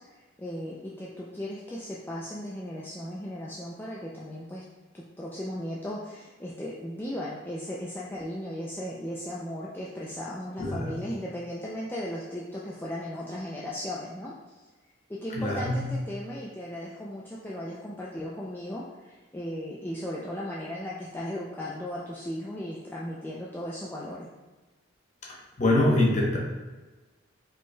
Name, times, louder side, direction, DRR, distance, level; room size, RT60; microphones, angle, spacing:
voice 1, 0.0-4.6 4.9-14.6 15.1-24.3, left 1 dB, 10° left, -6 dB, 0.3 m, -36 dB
voice 2, 10.6-10.9 15.4-15.8 25.2-26.4, left 1 dB, 35° left, -3 dB, 0.8 m, -24 dB
5.0 x 3.7 x 2.2 m, 1.2 s
head